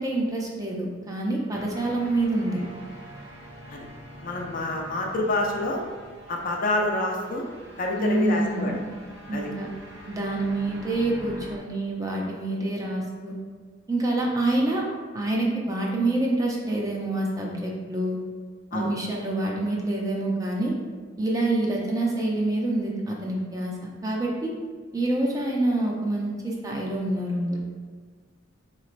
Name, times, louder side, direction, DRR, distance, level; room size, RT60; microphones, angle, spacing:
voice 1, 0.0-2.6 8.0-8.9 9.3-9.7 10.1-13.3 13.9-14.8 15.1-18.2 18.7-20.7 21.2-23.7 24.0-24.5 24.9-27.6, right 2 dB, 20° right, -2 dB, 0.4 m, -26 dB
sound 1, 1.5-11.6, equal, 65° right, 0.9 m, -44 dB
voice 2, 4.2-5.8 6.3-7.4 7.8-8.7 9.3-9.5 18.7-18.9, left 2 dB, 45° left, 0 dB, 0.5 m, -27 dB
4.0 x 3.1 x 2.5 m, 1.5 s
head